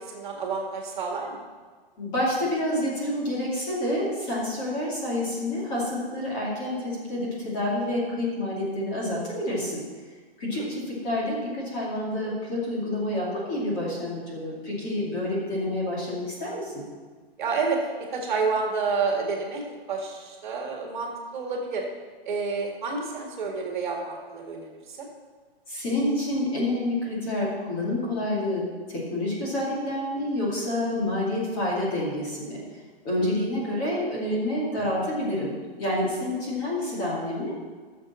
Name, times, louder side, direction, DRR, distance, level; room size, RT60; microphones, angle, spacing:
voice 1, 0.1-1.4 10.5-10.7 17.4-17.8 18.1-21.8 22.2-24.7, right 4 dB, 50° right, 0 dB, 1.9 m, -29 dB
voice 2, 2.0-9.8 10.4-16.9 25.7-32.6 33.0-37.5, left 1 dB, 20° left, -6 dB, 2.3 m, -28 dB
13.5 x 6.8 x 4.3 m, 1.5 s
hypercardioid pair, 180°, 31 cm